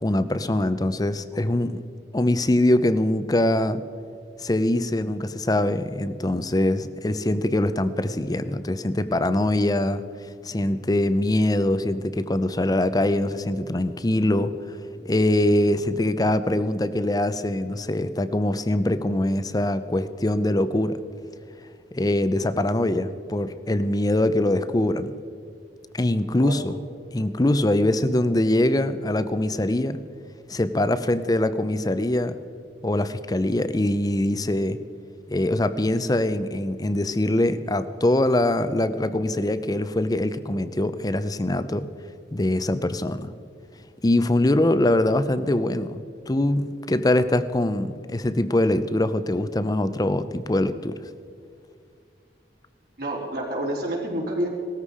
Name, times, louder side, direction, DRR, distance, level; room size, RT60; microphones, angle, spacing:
voice 1, 0.0-1.7 2.1-3.8 4.4-14.8 15.0-21.0 21.9-25.1 25.9-26.8 27.1-30.0 30.5-32.4 32.8-34.8 35.3-41.9 42.3-43.3 44.0-51.0, left 1 dB, 20° left, 12 dB, 0.6 m, -23 dB
voice 2, 53.0-54.5, right 1 dB, 60° right, -2 dB, 3.8 m, -28 dB
18.0 x 14.0 x 4.9 m, 2.3 s
head